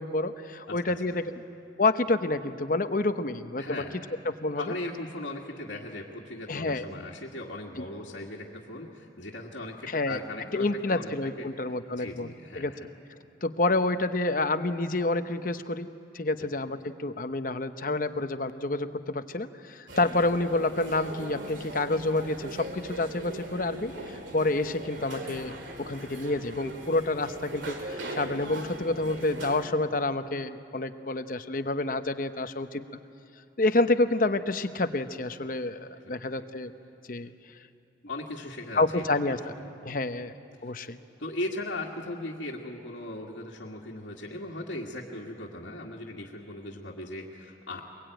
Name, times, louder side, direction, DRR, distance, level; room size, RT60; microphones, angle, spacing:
voice 1, 0.0-1.3 1.8-3.8 4.3-4.6 6.5-6.9 7.8-7.9 9.9-10.2 10.5-12.7 13.4-15.9 16.1-25.5 25.8-33.0 33.6-36.7 37.1-37.3 38.7-39.4 39.8-40.3 40.6-41.0, left 2 dB, 45° left, 9 dB, 0.9 m, -28 dB
voice 2, 3.6-4.1 4.6-11.1 11.4-11.5 11.9-12.9 36.0-36.5 38.1-39.0 39.3-39.4 39.6-40.0 40.6-40.7 41.2-47.8, left 1 dB, 75° left, -4 dB, 2.0 m, -38 dB
sound 1, 19.9-29.6, right 1 dB, 90° right, 2.4 m, -40 dB
23.0 x 22.0 x 9.1 m, 2.6 s
head